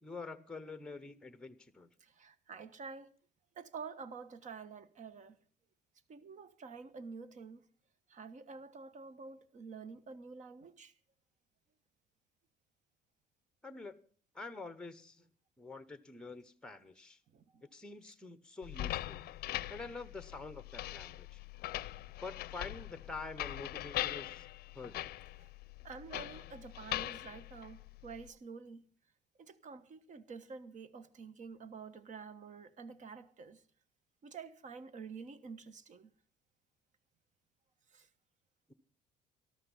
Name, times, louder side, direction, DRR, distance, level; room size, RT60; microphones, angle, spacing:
voice 1, 0.0-1.9 13.6-14.0 14.3-15.2 15.6-17.2 17.6-19.2 19.7-21.4 22.2-24.5 24.7-25.1, left 3 dB, 5° left, 0.9 m, -47 dB
voice 2, 2.0-3.1 3.5-5.4 6.1-7.7 8.1-10.9 17.3-17.7 18.0-18.1 25.4-25.5 25.8-28.9 29.4-33.6 34.2-36.1 37.9-38.1, right 5 dB, 45° right, 1.3 m, -49 dB
sound 1, 18.6-28.3, left 15 dB, 65° left, 0.5 m, -42 dB
13.0 x 13.0 x 5.5 m
cardioid pair, 110°, 17 cm